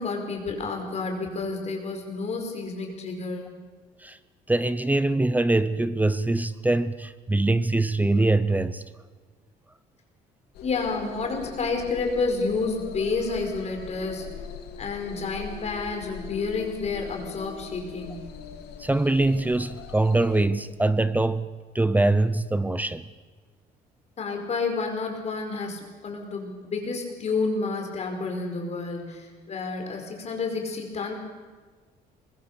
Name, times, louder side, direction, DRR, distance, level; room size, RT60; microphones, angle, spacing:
voice 1, 0.0-3.5 10.6-14.3 14.8-18.3 24.2-31.2, left 4 dB, 40° left, 5.0 m, -30 dB
voice 2, 4.5-8.8 18.8-23.1, right 2 dB, 10° right, 0.8 m, -23 dB
sound 1, 10.5-20.5, left 7 dB, 75° left, 2.6 m, -41 dB
24.0 x 21.0 x 6.9 m
cardioid pair, 110°, 17 cm